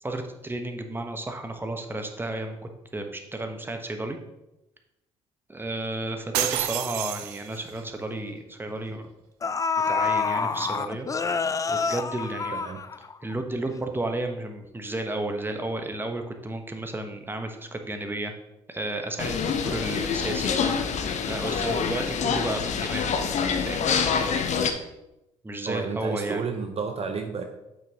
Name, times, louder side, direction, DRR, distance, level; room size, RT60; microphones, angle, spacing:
voice 1, 0.0-2.6 2.9-4.2 5.5-9.1 9.9-11.1 11.7-12.6 13.2-18.3 18.7-20.5 21.3-23.1 23.7-24.0 25.4-26.4, right 2 dB, 15° right, 5 dB, 1.2 m, -32 dB
sound 1, 6.3-7.8, right 12 dB, 70° right, 0.5 m, -29 dB
sound 2, 7.2-7.3 7.7-7.9 8.9-9.0 9.4-13.3 13.7-13.8, left 5 dB, 20° left, 0.4 m, -27 dB
voice 2, 12.5-12.8 20.6-20.7 25.7-27.4, right 5 dB, 40° right, 5 dB, 0.9 m, -31 dB
sound 3, 19.2-24.7, left 6 dB, 50° left, 0.9 m, -26 dB
8.6 x 6.2 x 3.0 m, 0.92 s
hypercardioid pair, 50°, 15 cm